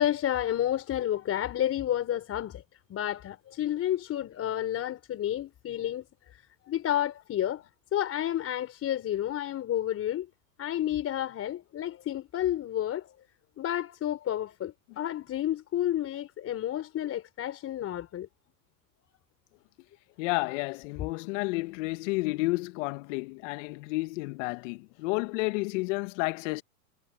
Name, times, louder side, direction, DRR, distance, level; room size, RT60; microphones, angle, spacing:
voice 1, 0.0-2.6 2.9-7.6 7.9-10.3 10.6-13.1 13.6-18.3, left 11 dB, 30° left, 4.9 m, -30 dB
voice 2, 20.2-26.6, left 24 dB, 50° left, 1.9 m, -31 dB
hypercardioid pair, 110°, 46 cm